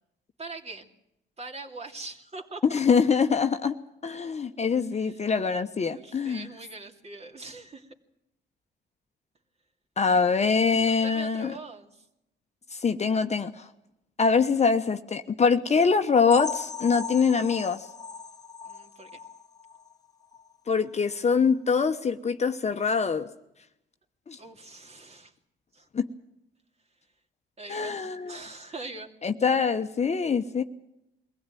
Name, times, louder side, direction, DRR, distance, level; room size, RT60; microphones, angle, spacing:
voice 1, 0.4-0.9 1.4-2.6 4.9-5.2 5.9-7.9 10.1-10.2 10.9-11.9 18.7-19.2 24.4-25.3 25.7-25.9 27.6-29.1, right 3 dB, 30° right, 2 dB, 2.7 m, -42 dB
voice 2, 2.6-3.7 4.0-6.5 10.0-11.5 12.7-13.7 14.2-17.9 20.7-23.3 24.3-24.4 25.9-26.0 27.7-28.4 29.2-30.6, left 5 dB, 35° left, 8 dB, 1.1 m, -24 dB
sound 1, 16.3-19.9 20.3-20.5 20.8-20.9 21.4-21.5, left 5 dB, 20° left, 1.2 m, -37 dB
23.0 x 16.0 x 9.2 m, 0.85 s
cardioid pair, 90°, 20 cm